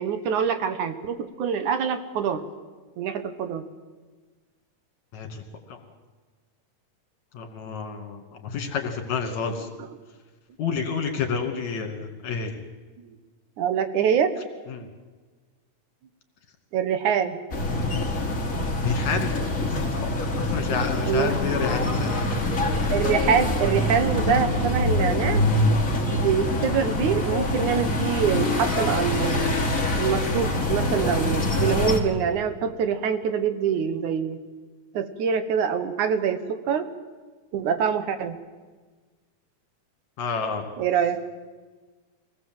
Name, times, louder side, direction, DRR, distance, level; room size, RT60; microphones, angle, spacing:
voice 1, 0.0-2.4 3.0-3.6 9.8-9.9 13.0-13.2 13.6-14.3 16.7-17.4 21.1-21.3 22.9-25.5 26.1-29.5 30.0-34.4 34.9-36.9 37.5-38.4 40.8-41.2, right 7 dB, 70° right, 10 dB, 2.6 m, -25 dB
voice 2, 5.1-5.4 5.7-5.8 7.3-9.7 10.6-12.5 14.7-14.9 17.7-18.0 18.8-19.4 19.7-20.1 20.4-22.1 40.2-40.7, left 5 dB, 60° left, 4 dB, 3.6 m, -29 dB
sound 1, 17.5-32.0, left 1 dB, 25° left, 2.8 m, -25 dB
25.0 x 18.5 x 7.8 m, 1.4 s
omnidirectional pair, 3.7 m